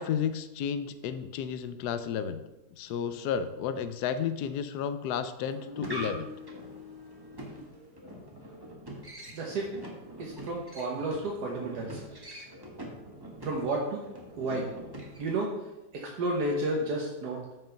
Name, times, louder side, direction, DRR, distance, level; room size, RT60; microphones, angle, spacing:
voice 1, 0.0-2.4 2.8-6.3, left 7 dB, 85° left, 11 dB, 1.2 m, -32 dB
sound 1, 5.4-15.4, equal, 15° right, 1.4 m, -44 dB
voice 2, 9.3-9.7 10.2-12.3 13.4-14.0 14.4-14.7 15.2-15.7 15.9-17.4, right 2 dB, 85° right, -2 dB, 1.7 m, -32 dB
7.3 x 5.5 x 5.8 m, 0.99 s
omnidirectional pair, 1.7 m